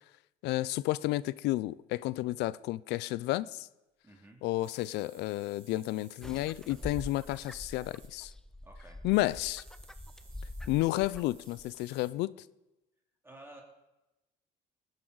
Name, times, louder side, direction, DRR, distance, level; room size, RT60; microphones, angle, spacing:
voice 1, 0.4-3.7 4.4-8.3 9.0-9.6 10.7-12.3, left 17 dB, 85° left, 0.5 m, -31 dB
voice 2, 4.0-4.4 8.6-9.0 13.2-13.6, right 1 dB, 15° right, 2.5 m, -52 dB
sound 1, 4.6-8.1 9.1-12.1, right 3 dB, 40° right, 4.0 m, -59 dB
sound 2, 6.2-11.8, left 1 dB, 5° left, 0.5 m, -45 dB
19.5 x 10.5 x 4.0 m
cardioid pair, 110°, 17 cm